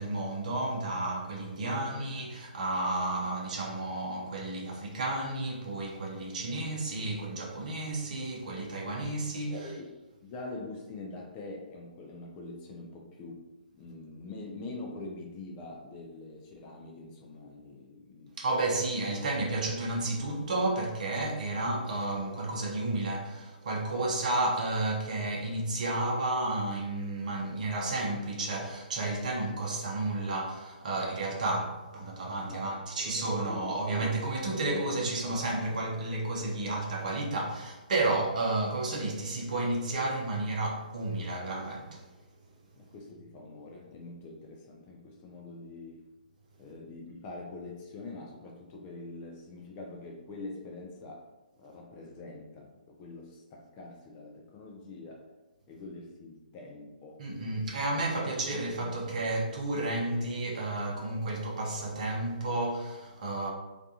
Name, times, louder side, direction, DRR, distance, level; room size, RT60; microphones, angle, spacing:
voice 1, 0.0-9.7 18.4-42.0 57.2-63.5, right 2 dB, 50° right, 0.7 m, -32 dB
voice 2, 1.6-2.0 9.5-9.9 10.2-13.5 13.8-18.3 23.9-24.1 32.4-34.8 35.4-35.8 42.8-46.0 46.6-51.3 51.6-55.3 55.7-57.4 58.2-58.9, left 2 dB, 25° left, 0.4 m, -44 dB
2.4 x 2.3 x 2.7 m
figure-of-eight pair, 140°, 5 cm